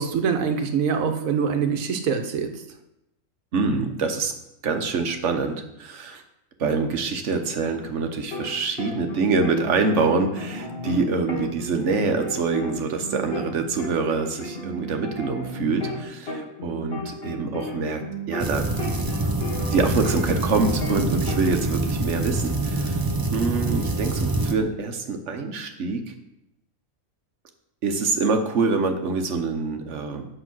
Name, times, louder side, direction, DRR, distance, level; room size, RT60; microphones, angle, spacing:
voice 1, 0.0-2.5, right 6 dB, 90° right, 6 dB, 1.3 m, -24 dB
voice 2, 3.5-4.3 4.6-6.2 6.6-18.0 18.3-18.7 19.7-23.0 23.3-26.1 27.8-30.3, right 4 dB, 65° right, 6 dB, 1.3 m, -25 dB
sound 1, 7.6-8.5 8.8-13.5 13.8-18.5 18.8-21.5, equal, 50° left, 1.8 m, -34 dB
sound 2, 18.4-24.5, right 2 dB, 25° right, 0.5 m, -26 dB
7.9 x 5.5 x 6.1 m, 0.87 s
omnidirectional pair, 1.4 m